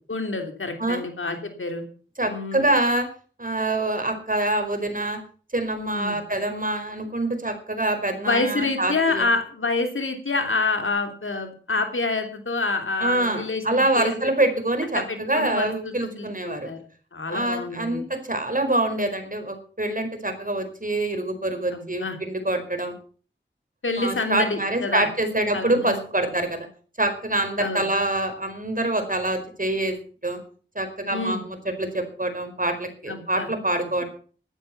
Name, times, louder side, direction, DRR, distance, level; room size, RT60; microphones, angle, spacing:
voice 1, 0.1-1.9 2.2-2.8 5.9-6.2 8.2-14.2 14.9-16.8 17.1-18.1 21.7-22.2 23.8-25.1 25.5-26.0 27.6-27.9 31.1-31.4 33.1-33.5, left 3 dB, 90° left, 5 dB, 3.1 m, -27 dB
voice 2, 2.2-3.1 3.4-5.2 5.5-9.3 13.0-16.7 17.3-22.9 24.0-26.7 27.0-30.0 30.2-30.4 30.7-34.0, right 1 dB, 45° right, 6 dB, 4.7 m, -25 dB
15.0 x 12.5 x 5.9 m, 0.42 s
wide cardioid pair, 40°, 20 cm